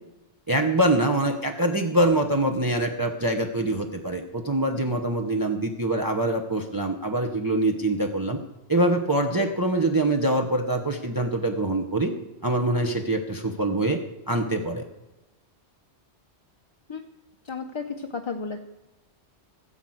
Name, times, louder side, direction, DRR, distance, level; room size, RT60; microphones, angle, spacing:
voice 1, 0.5-8.4 8.7-12.1 12.4-14.0 14.3-14.8, right 1 dB, 20° right, 3 dB, 0.9 m, -24 dB
voice 2, 17.4-18.6, left 4 dB, 30° left, 4 dB, 0.7 m, -33 dB
15.0 x 5.8 x 7.8 m, 1.0 s
omnidirectional pair, 1.2 m